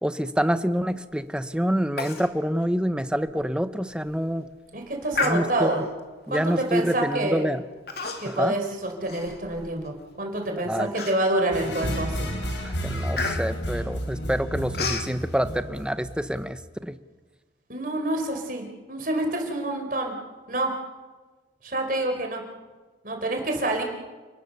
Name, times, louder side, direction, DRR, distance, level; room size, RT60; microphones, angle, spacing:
voice 1, 0.0-4.5 5.2-5.7 6.3-7.6 8.2-8.5 10.6-10.9 12.6-17.0, equal, 5° right, 11 dB, 0.8 m, -27 dB
Human voice, 2.0-2.3 2.6-2.7 3.2-3.3 3.9-4.2 5.1-5.8 6.6-6.8 7.9-8.5 8.8-9.9 10.4-10.5 10.9-11.5 12.0-12.2 12.5-15.1, left 3 dB, 55° left, 2.8 m, -32 dB
voice 2, 4.7-5.8 6.3-7.4 8.2-12.3 17.7-20.2 20.5-20.7 21.6-22.4 23.0-23.8, right 1 dB, 45° right, 3 dB, 4.8 m, -27 dB
sound 1, 11.5-16.5, equal, 80° left, 5.7 m, -31 dB
30.0 x 20.5 x 6.9 m, 1.3 s
head